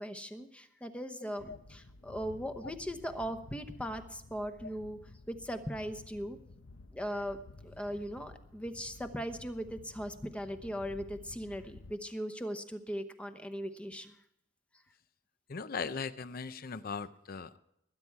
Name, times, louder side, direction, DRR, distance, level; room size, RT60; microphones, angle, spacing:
voice 1, 0.0-5.0 5.3-6.4 6.9-14.2, equal, 5° left, 7 dB, 0.9 m, -39 dB
voice 2, 1.2-1.6 15.5-17.6, left 5 dB, 50° left, 14 dB, 0.6 m, -39 dB
sound 1, 1.4-11.9, left 2 dB, 85° left, 0.9 m, -53 dB
20.5 x 9.7 x 4.7 m, 0.79 s
head